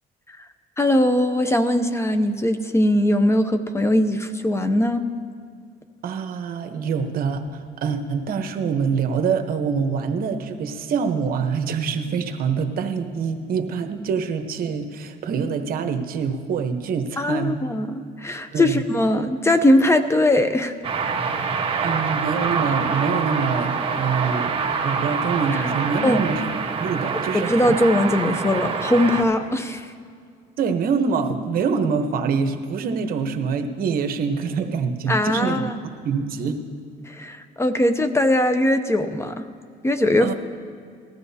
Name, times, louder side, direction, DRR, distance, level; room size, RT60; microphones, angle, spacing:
voice 1, 0.8-5.0 17.2-20.7 25.5-25.7 26.0-26.2 27.3-29.9 35.1-35.7 37.1-39.4 39.8-40.3, left 1 dB, 15° left, 9 dB, 0.6 m, -20 dB
voice 2, 6.0-17.6 18.5-18.8 21.8-24.5 24.8-26.4 26.8-27.8 30.6-35.7 36.0-36.6 40.2-40.3, right 5 dB, 60° right, 6 dB, 1.0 m, -25 dB
sound 1, 20.8-29.2, right 5 dB, 30° right, 1.3 m, -25 dB
19.5 x 13.5 x 2.8 m, 2.2 s
cardioid pair, 110°, 17 cm